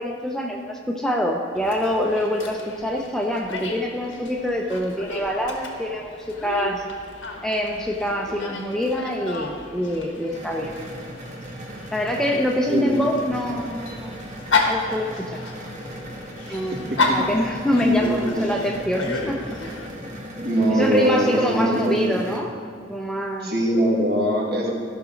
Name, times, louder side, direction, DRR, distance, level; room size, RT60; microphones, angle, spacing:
voice 1, 0.0-6.8 7.4-10.7 11.9-14.4 14.7-15.4 16.5-19.4 20.7-22.5 22.9-23.5, equal, 5° left, 0 dB, 0.6 m, -25 dB
Dog, 1.5-19.9, left 3 dB, 85° left, 1.3 m, -32 dB
sound 1, 10.3-22.4, equal, 40° right, 1.2 m, -38 dB
voice 2, 16.5-17.2 17.8-18.4 20.0-22.2 23.4-24.7, right 1 dB, 55° right, -2 dB, 1.9 m, -23 dB
14.5 x 6.0 x 3.8 m, 2.3 s
head